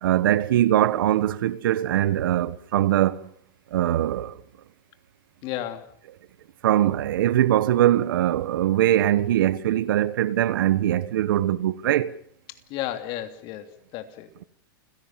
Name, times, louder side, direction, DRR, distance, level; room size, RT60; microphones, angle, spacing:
voice 1, 0.0-3.3 3.7-4.4 6.6-12.1, right 12 dB, 75° right, 1.3 m, -22 dB
voice 2, 5.4-5.9 12.5-14.3, left 12 dB, 45° left, 3.0 m, -33 dB
29.5 x 16.5 x 7.5 m
supercardioid pair, 135°, 11 cm